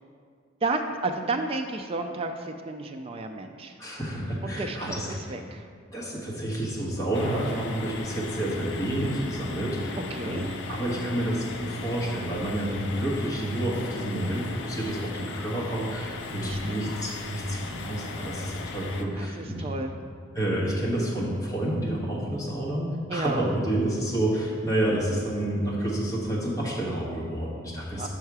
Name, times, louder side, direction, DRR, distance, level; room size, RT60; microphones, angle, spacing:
voice 1, 0.6-3.8 4.4-5.6 10.1-10.5 16.3-16.7 19.2-19.9 23.1-23.5 28.0-28.1, right 3 dB, 30° right, 5 dB, 0.3 m, -32 dB
voice 2, 3.8-5.2 5.9-19.6 20.3-28.1, right 1 dB, 15° left, -6 dB, 1.3 m, -29 dB
sound 1, 7.1-19.1, left 3 dB, 65° left, 0.5 m, -37 dB
5.8 x 5.5 x 4.7 m, 2.1 s
head